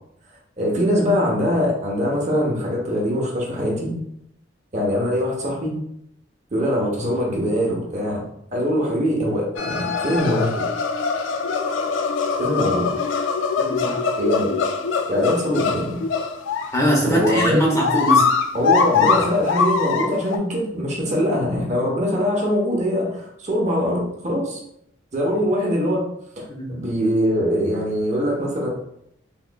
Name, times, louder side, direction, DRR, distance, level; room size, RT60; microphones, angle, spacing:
voice 1, 0.6-3.9 4.7-5.7 6.5-8.2 8.5-10.7 12.4-12.9 14.2-14.5 15.1-16.0 17.0-17.6 18.5-24.6 25.1-26.1 26.4-28.7, equal, 35° right, -2 dB, 0.8 m, -22 dB
sound 1, 9.6-20.4, left 5 dB, 75° left, 0.3 m, -23 dB
voice 2, 13.6-14.0 16.7-18.3 26.5-26.7, equal, 15° left, -3 dB, 0.7 m, -21 dB
3.6 x 3.0 x 2.2 m, 0.75 s
head